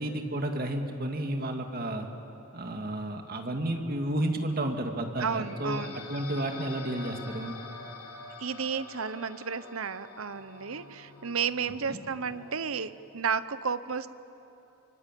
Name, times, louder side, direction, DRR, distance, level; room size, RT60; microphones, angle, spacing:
voice 1, 0.0-2.1 2.5-7.6 11.9-12.0, right 1 dB, 45° right, 4 dB, 2.2 m, -32 dB
sound 1, 5.2-12.8, left 3 dB, 85° left, 4.5 m, -46 dB
voice 2, 5.2-6.0 8.4-14.1, right 6 dB, 70° right, 14 dB, 0.9 m, -32 dB
25.0 x 24.5 x 9.2 m, 2.9 s
head